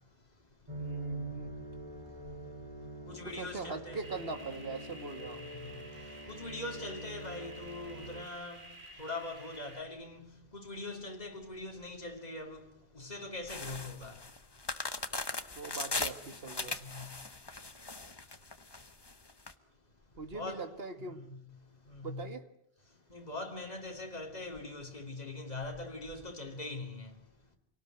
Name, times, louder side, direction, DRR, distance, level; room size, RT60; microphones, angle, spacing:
sound 1, 0.7-8.2, right 2 dB, 30° right, 3.0 m, -44 dB
voice 1, 0.8-1.6 3.2-5.4 15.6-16.8 20.2-21.2 22.0-22.4, right 4 dB, 70° right, 2.1 m, -41 dB
voice 2, 3.1-4.0 6.3-8.7 9.0-12.6 12.9-14.2 16.8-17.1 20.3-20.7 21.1-21.4 21.9-22.2 23.1-27.1, left 2 dB, 40° left, 3.0 m, -42 dB
sound 2, 4.0-9.8, right 1 dB, 55° right, 2.8 m, -52 dB
sound 3, 13.5-19.5, left 3 dB, 25° left, 1.1 m, -39 dB
26.0 x 18.5 x 9.2 m
omnidirectional pair, 1.0 m